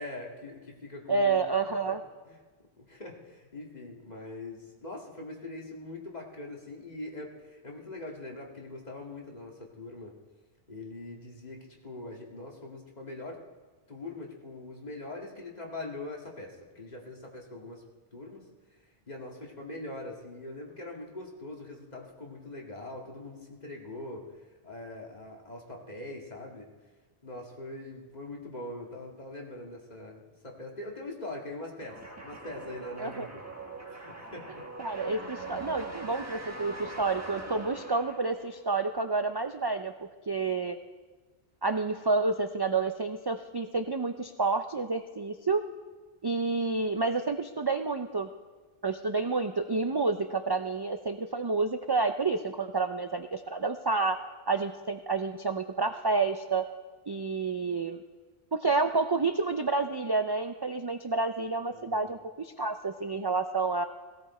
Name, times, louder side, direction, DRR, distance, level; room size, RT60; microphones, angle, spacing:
voice 1, 0.0-1.6 1.9-2.0 2.3-2.4 2.8-10.1 10.7-13.4 13.9-17.8 18.1-18.5 19.1-24.3 24.6-26.7 27.2-33.5 33.9-34.7 61.7-62.1, left 2 dB, 40° left, -1 dB, 2.2 m, -42 dB
voice 2, 1.1-2.0 33.0-33.3 34.8-39.9 40.3-40.8 41.6-45.6 46.2-48.3 48.8-56.7 57.1-58.0 58.5-63.8, right 3 dB, 35° right, 7 dB, 0.4 m, -29 dB
sound 1, 31.8-38.6, right 3 dB, 15° right, 1.6 m, -42 dB
17.0 x 16.5 x 4.3 m, 1.3 s
omnidirectional pair, 1.1 m